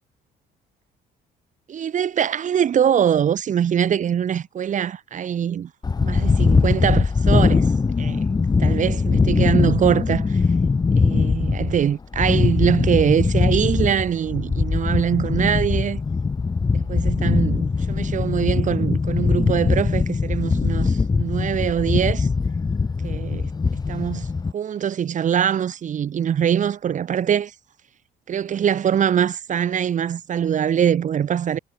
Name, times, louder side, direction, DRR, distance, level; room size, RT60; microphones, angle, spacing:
voice 1, 1.7-5.7 6.0-7.7 8.0-8.3 8.6-10.4 11.0-16.0 16.7-22.3 23.0-23.5 23.9-24.3 24.5-27.5 28.3-31.6, right 9 dB, 50° right, 3.3 m, -23 dB
sound 1, 5.8-24.5, left 4 dB, 25° left, 2.2 m, -21 dB
cardioid pair, 110°, 17 cm